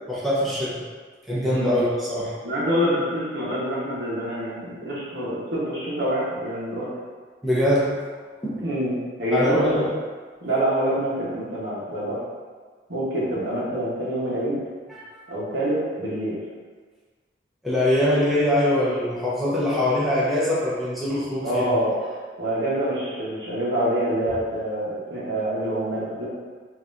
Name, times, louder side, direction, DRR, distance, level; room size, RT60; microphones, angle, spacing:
voice 1, 0.1-0.8 1.3-2.3 7.4-7.9 8.4-8.6 9.3-9.8 15.1-15.2 17.6-21.7, left 1 dB, ahead, -10 dB, 0.9 m, -23 dB
voice 2, 2.4-6.9 8.6-8.9 9.2-9.8 10.4-12.2 12.9-14.6 15.3-16.4 21.4-21.9 22.4-26.3, right 1 dB, 65° right, -8 dB, 1.3 m, -26 dB
5.4 x 2.9 x 2.7 m, 1.5 s
head